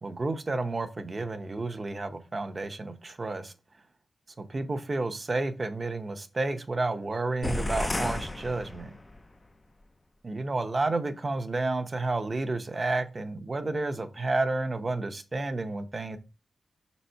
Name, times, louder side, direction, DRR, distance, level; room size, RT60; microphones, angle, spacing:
voice 1, 0.0-3.5 4.4-8.9 10.2-16.2, right 2 dB, 35° right, 0.8 m, -31 dB
sound 1, 7.4-9.3, left 2 dB, 25° left, 0.5 m, -32 dB
5.8 x 4.2 x 4.6 m
wide cardioid pair, 100°, 0 cm